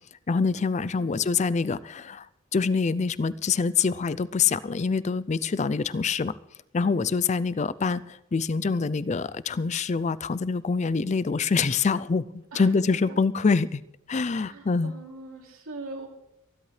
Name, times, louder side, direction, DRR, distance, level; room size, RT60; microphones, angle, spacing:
voice 1, 0.3-2.3 2.5-6.3 6.7-13.8 14.1-14.9, left 5 dB, 30° left, 18 dB, 0.4 m, -25 dB
voice 2, 0.9-1.3 6.8-7.2 12.5-13.2 14.3-16.1, right 2 dB, 80° right, 1 dB, 2.9 m, -42 dB
26.0 x 11.5 x 3.3 m, 0.88 s
head